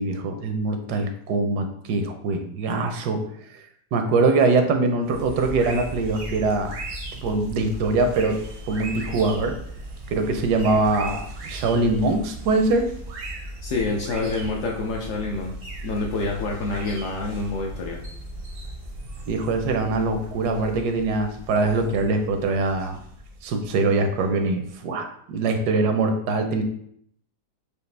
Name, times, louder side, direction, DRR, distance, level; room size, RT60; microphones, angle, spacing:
voice 1, 0.0-3.2 3.5-3.6 3.9-6.7 7.2-8.4 8.7-9.6 10.1-12.9 19.3-23.0 23.4-26.6, right 3 dB, 80° right, 6 dB, 1.1 m, -23 dB
sound 1, 5.0-24.5, right 1 dB, 60° right, 0.6 m, -37 dB
voice 2, 13.6-15.5 15.8-18.0, left 3 dB, 70° left, 0 dB, 0.8 m, -27 dB
5.0 x 2.4 x 3.2 m, 0.69 s
omnidirectional pair, 1.8 m